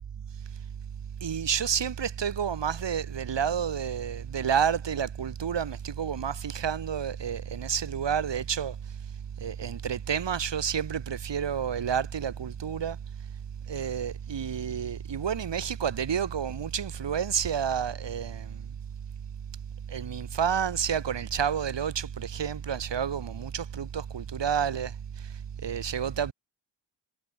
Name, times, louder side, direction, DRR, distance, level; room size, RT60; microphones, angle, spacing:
voice 1, 1.2-8.7 9.4-13.0 13.7-18.5 19.9-24.9 25.6-26.3, right 8 dB, 60° right, 3.6 m, -30 dB
cardioid pair, 100°, 49 cm